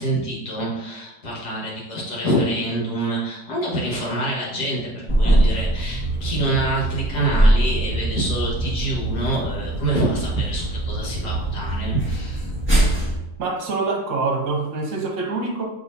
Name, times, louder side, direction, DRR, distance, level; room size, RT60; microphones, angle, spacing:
voice 1, 0.0-12.5, right 1 dB, 70° left, -4 dB, 2.0 m, -26 dB
sound 1, 5.1-13.2, right 1 dB, 5° left, 1.4 m, -22 dB
voice 2, 13.4-15.7, right 3 dB, 55° right, 0 dB, 1.0 m, -25 dB
6.1 x 3.2 x 2.7 m, 0.90 s
omnidirectional pair, 1.9 m